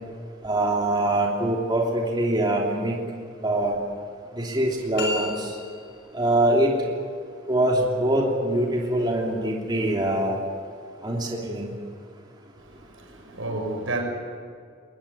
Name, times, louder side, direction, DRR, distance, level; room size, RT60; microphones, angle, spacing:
voice 1, 0.4-3.0 3.4-3.7 4.3-5.5 6.1-6.7 7.5-10.4 11.0-11.7, right 1 dB, 20° right, 3.0 m, -23 dB
sound 1, 5.0-6.1, left 2 dB, 55° left, 6.5 m, -32 dB
voice 2, 12.6-14.0, right 2 dB, 80° right, 6.2 m, -31 dB
22.5 x 19.0 x 9.6 m
head